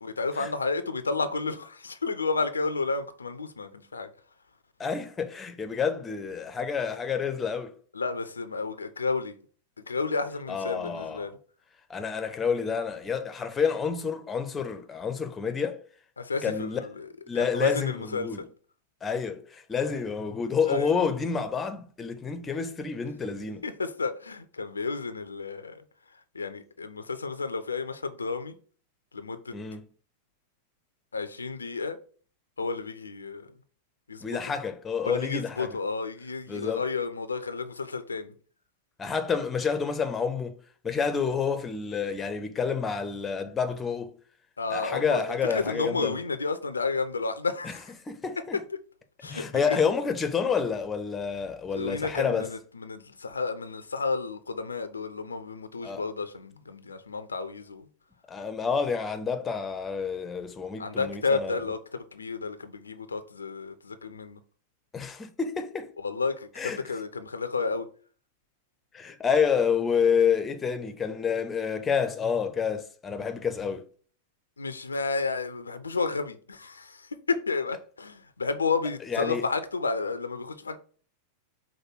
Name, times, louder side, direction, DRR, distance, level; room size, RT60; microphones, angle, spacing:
voice 1, 0.0-4.1 7.9-9.3 9.9-11.3 16.2-17.1 17.3-18.5 20.7-20.9 23.6-25.8 26.3-28.5 29.1-29.5 31.1-32.0 32.6-33.5 34.1-34.2 35.0-38.3 44.6-45.2 45.5-47.8 49.2-49.8 51.7-57.9 60.8-64.4 66.0-67.9 74.6-80.8, left 4 dB, 75° left, 0.3 m, -31 dB
voice 2, 4.8-7.7 10.5-11.3 11.9-15.8 16.4-16.8 17.3-18.4 19.0-23.6 29.5-29.8 34.2-35.7 36.5-36.8 39.0-44.1 44.7-46.2 47.6-47.7 48.1-48.6 49.2-52.5 55.8-56.0 58.3-61.6 64.9-65.9 66.6-66.8 68.9-73.9 79.1-79.5, left 6 dB, 20° left, 0.5 m, -29 dB
4.7 x 2.2 x 4.4 m
figure-of-eight pair, 90°, 0 cm